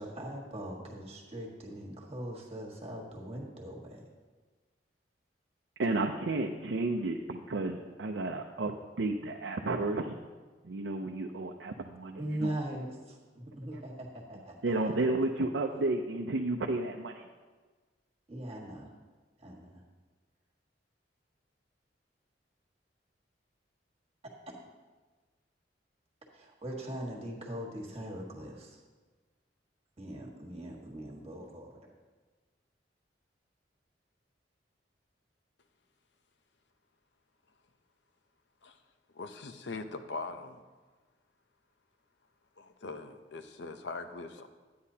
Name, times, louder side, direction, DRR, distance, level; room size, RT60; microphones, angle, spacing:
voice 1, 0.0-4.0 12.2-15.1 18.3-18.9 19.4-19.8 24.2-24.3 26.3-28.8 30.0-31.9, right 1 dB, 35° right, -1 dB, 1.6 m, -41 dB
voice 2, 5.8-8.7 9.0-10.1 10.6-12.5 14.6-17.1, right 2 dB, 80° right, 2 dB, 0.6 m, -32 dB
voice 3, 39.1-40.6 42.6-44.5, left 3 dB, 70° left, 8 dB, 0.7 m, -41 dB
11.5 x 9.4 x 2.8 m, 1.3 s
head